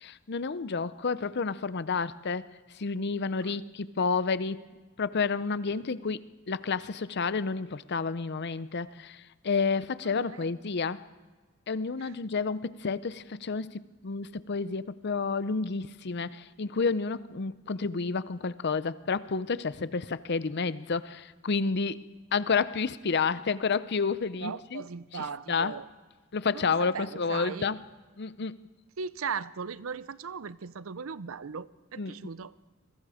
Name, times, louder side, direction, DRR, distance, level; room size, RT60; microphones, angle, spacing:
voice 1, 0.0-2.5 2.8-4.6 5.0-11.0 11.7-22.0 22.3-24.8 25.1-25.7 26.3-27.8 28.2-28.6 32.0-32.1, left 4 dB, 55° left, 0.6 m, -30 dB
voice 2, 10.0-10.5 12.0-12.1 24.4-25.8 26.5-27.7 29.0-32.5, right 6 dB, 85° right, 0.6 m, -38 dB
27.5 x 22.0 x 5.0 m
head